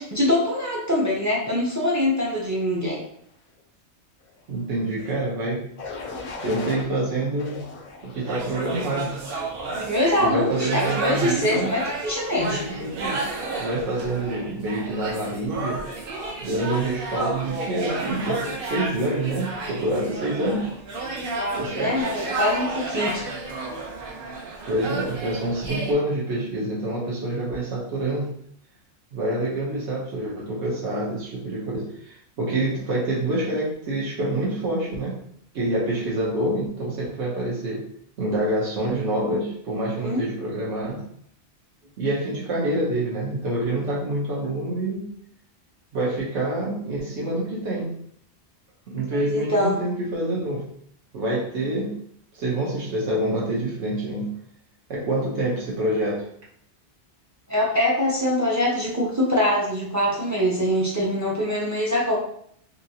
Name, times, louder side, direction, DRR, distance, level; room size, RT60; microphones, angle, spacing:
voice 1, 0.0-3.0 9.7-12.6 21.4-23.2 40.0-40.2 49.1-49.8 57.5-62.2, left 1 dB, 25° right, -5 dB, 0.4 m, -24 dB
voice 2, 4.5-5.7 6.4-7.7 8.0-9.2 10.2-11.7 12.5-13.3 13.6-15.9 16.4-20.7 21.6-22.1 24.7-28.3 29.1-35.2 35.5-37.9 38.2-41.1 42.0-45.1 45.9-47.9 48.9-50.7 51.1-52.0 52.3-54.4 54.9-56.3, right 1 dB, 80° right, -5 dB, 1.1 m, -27 dB
sound 1, 4.9-5.2 5.8-6.8 7.4-8.4 9.0-9.4, left 3 dB, 55° left, 0.5 m, -38 dB
sound 2, 8.2-25.9, right 3 dB, 60° right, 0.8 m, -32 dB
2.9 x 2.6 x 2.7 m, 0.66 s
omnidirectional pair, 1.2 m